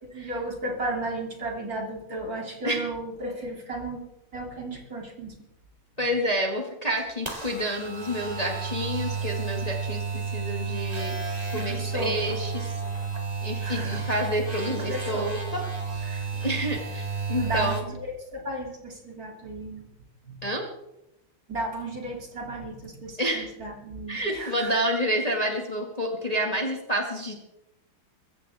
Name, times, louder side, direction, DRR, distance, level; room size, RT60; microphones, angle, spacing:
voice 1, 0.0-4.0 4.3-5.3 11.5-12.4 13.6-14.1 14.8-15.3 16.0-16.2 17.3-19.8 20.2-20.5 21.5-24.8, right 1 dB, 40° right, 0 dB, 3.3 m, -34 dB
voice 2, 6.0-11.1 11.5-12.7 13.4-15.6 15.9-16.1 16.4-17.8 20.4-20.6 23.2-23.5 24.1-27.3, equal, 20° left, 1 dB, 1.9 m, -29 dB
sound 1, 7.0-17.8, right 5 dB, 20° right, 1.8 m, -32 dB
23.0 x 15.0 x 3.6 m, 0.86 s
omnidirectional pair, 2.4 m